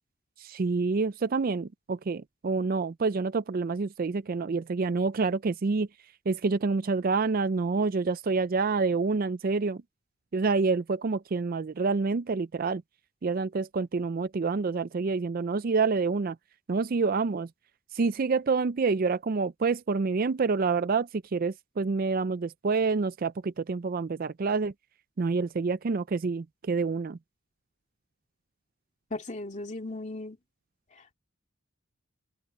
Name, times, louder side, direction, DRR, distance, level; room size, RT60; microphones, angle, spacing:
voice 1, 0.4-5.9 6.3-9.8 10.3-12.8 13.2-16.4 16.7-17.5 17.9-24.7 25.2-27.2, right 4 dB, 40° right, 0.4 m, -27 dB
voice 2, 29.1-30.4 30.9-31.1, left 2 dB, 35° left, 2.6 m, -37 dB
head